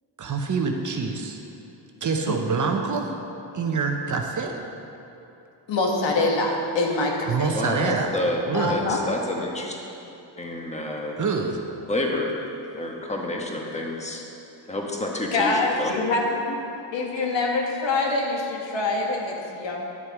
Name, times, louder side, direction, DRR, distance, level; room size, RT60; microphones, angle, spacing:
voice 1, 0.2-1.4 2.0-3.1 3.5-4.6 7.3-8.1 8.5-8.8 11.2-11.6, right 4 dB, 40° right, 3 dB, 0.8 m, -26 dB
voice 2, 5.7-7.9 8.5-9.0 10.5-10.6 15.3-16.6 16.9-19.8, left 2 dB, 70° left, 0 dB, 1.5 m, -25 dB
voice 3, 7.5-8.4 8.7-9.8 10.4-11.2 11.9-12.3 12.7-14.2 14.7-15.9, left 1 dB, 15° left, 0 dB, 1.2 m, -29 dB
10.5 x 6.5 x 4.7 m, 2.8 s
cardioid pair, 110°, 46 cm